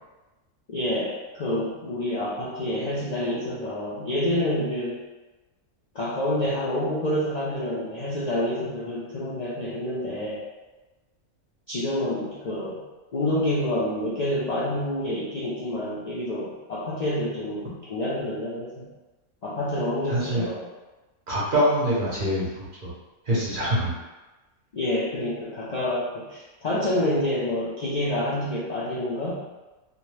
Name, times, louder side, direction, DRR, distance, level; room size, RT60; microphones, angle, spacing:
voice 1, 0.7-5.0 5.9-10.4 11.7-12.8 13.1-18.9 19.4-20.6 24.7-29.3, left 1 dB, 85° left, -9 dB, 0.3 m, -28 dB
voice 2, 20.1-20.5 21.3-22.5 23.3-23.9, equal, 45° right, -7 dB, 0.8 m, -24 dB
2.8 x 2.1 x 3.1 m, 1.1 s
omnidirectional pair, 1.5 m